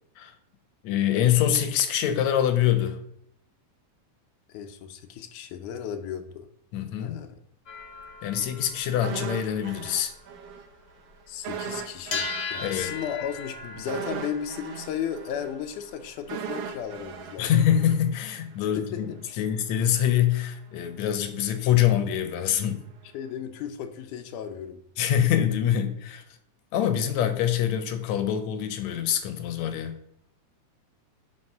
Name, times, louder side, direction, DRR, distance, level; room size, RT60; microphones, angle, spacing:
voice 1, 0.8-3.0 6.7-7.2 8.2-10.1 12.6-12.9 17.4-22.8 25.0-26.2 26.7-29.9, left 10 dB, 75° left, 9 dB, 2.0 m, -25 dB
voice 2, 4.5-6.5 7.0-7.4 11.3-12.2 12.5-17.5 18.7-19.4 23.1-24.8, left 8 dB, 90° left, 6 dB, 2.2 m, -35 dB
sound 1, 7.7-11.1 11.4-11.6 12.0-17.2, left 4 dB, 50° left, 1.4 m, -39 dB
sound 2, 9.0-10.7 10.9-11.1 11.4-18.5 18.8-19.0, right 7 dB, 65° right, 1.7 m, -38 dB
11.0 x 4.1 x 5.6 m, 0.72 s
omnidirectional pair, 3.4 m